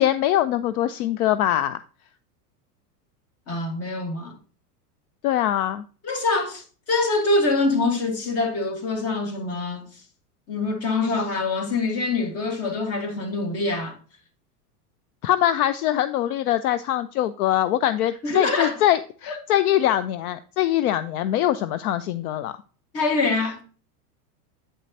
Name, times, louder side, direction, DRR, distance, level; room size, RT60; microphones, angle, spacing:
voice 1, 0.0-1.8 5.2-5.8 15.2-22.5, left 12 dB, 70° left, 0.5 m, -23 dB
voice 2, 3.5-4.4 6.0-10.0 10.5-14.0 18.2-18.8 19.3-19.4 22.9-23.6, left 3 dB, 30° left, 1.6 m, -25 dB
8.6 x 5.0 x 2.8 m
hypercardioid pair, 110°, 47 cm